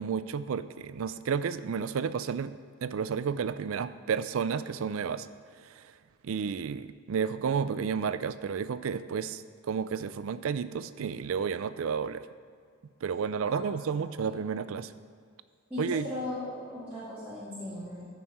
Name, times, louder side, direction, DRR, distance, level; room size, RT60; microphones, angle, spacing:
voice 1, 0.0-5.3 5.6-5.9 6.2-12.2 13.0-14.9 15.8-16.1, right 6 dB, 70° right, 14 dB, 0.4 m, -32 dB
voice 2, 13.9-14.3 15.7-18.0, left 1 dB, 5° right, -14 dB, 2.4 m, -38 dB
14.0 x 5.5 x 4.2 m, 2.1 s
head